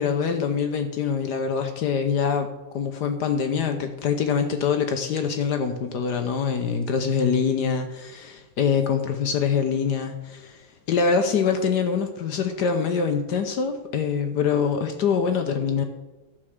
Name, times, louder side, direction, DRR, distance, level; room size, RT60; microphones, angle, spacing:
voice 1, 0.0-2.5 2.7-10.5 10.9-15.8, left 6 dB, 65° left, 6 dB, 1.2 m, -24 dB
12.5 x 4.5 x 6.4 m, 1.1 s
omnidirectional pair, 2.3 m